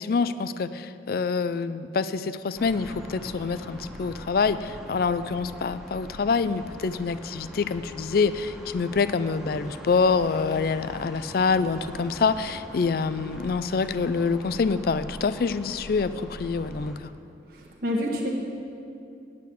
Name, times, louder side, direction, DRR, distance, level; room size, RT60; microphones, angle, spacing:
voice 1, 0.0-17.1, left 4 dB, 55° left, 14 dB, 0.4 m, -26 dB
sound 1, 2.5-17.0, equal, ahead, 1.1 m, -43 dB
voice 2, 17.5-18.3, left 1 dB, 55° right, -2 dB, 1.2 m, -28 dB
8.4 x 8.3 x 8.3 m, 2.5 s
head